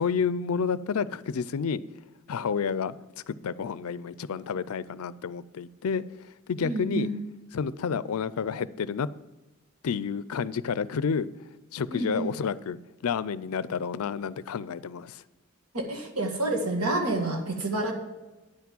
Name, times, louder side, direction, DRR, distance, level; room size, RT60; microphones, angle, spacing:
voice 1, 0.0-1.8 2.3-2.9 3.3-6.0 6.5-7.1 7.5-9.1 9.8-11.3 11.7-12.8 13.0-15.2, left 6 dB, 75° left, 18 dB, 0.4 m, -30 dB
voice 2, 6.6-7.1 11.9-12.3 15.7-17.9, right 2 dB, 85° right, 3 dB, 1.8 m, -28 dB
9.7 x 6.0 x 7.3 m, 1.1 s
head